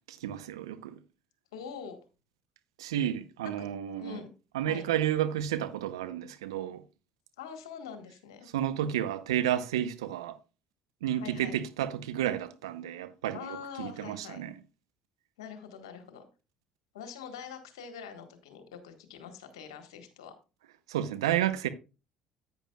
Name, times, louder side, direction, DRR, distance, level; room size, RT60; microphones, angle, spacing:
voice 1, 0.1-1.0 2.8-4.2 4.5-6.8 8.5-10.4 11.0-14.5 20.9-21.7, right 11 dB, 85° right, 0.7 m, -31 dB
voice 2, 1.5-2.0 3.4-3.7 4.0-4.3 4.6-4.9 7.4-8.5 11.1-11.5 13.3-14.4 15.4-16.2 16.9-20.3, left 7 dB, 85° left, 1.4 m, -44 dB
10.5 x 9.0 x 2.3 m
hypercardioid pair, 60°, 3 cm